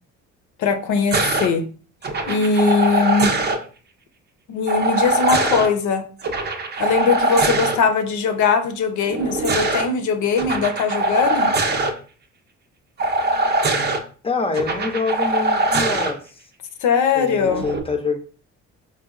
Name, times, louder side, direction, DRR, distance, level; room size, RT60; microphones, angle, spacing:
voice 1, 0.6-1.6 2.3-3.4 4.5-6.0 6.8-11.5 16.8-17.6, left 5 dB, 75° left, 8 dB, 0.6 m, -20 dB
sound 1, 1.1-1.5 2.0-3.6 4.7-5.7 6.2-7.8 9.1-9.9 10.4-11.9 13.0-14.0 14.5-16.1 17.4-17.8, right 2 dB, 35° right, 0.5 m, -22 dB
voice 2, 14.2-16.2 17.2-18.2, left 4 dB, 20° left, 6 dB, 0.5 m, -25 dB
3.9 x 2.2 x 2.4 m, 0.40 s
cardioid pair, 90°, 30 cm